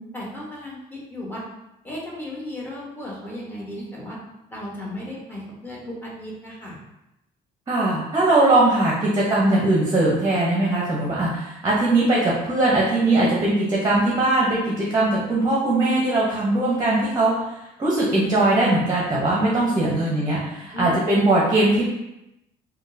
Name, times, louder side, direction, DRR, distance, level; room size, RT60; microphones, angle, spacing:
voice 1, 0.1-1.4 1.8-4.2 4.5-6.8 19.7-20.2 20.6-21.0, left 1 dB, 10° left, -5 dB, 1.0 m, -35 dB
voice 2, 7.7-17.3 17.8-21.9, right 2 dB, 25° right, -4 dB, 0.8 m, -20 dB
3.6 x 2.3 x 2.7 m, 0.89 s
cardioid pair, 110°, 17 cm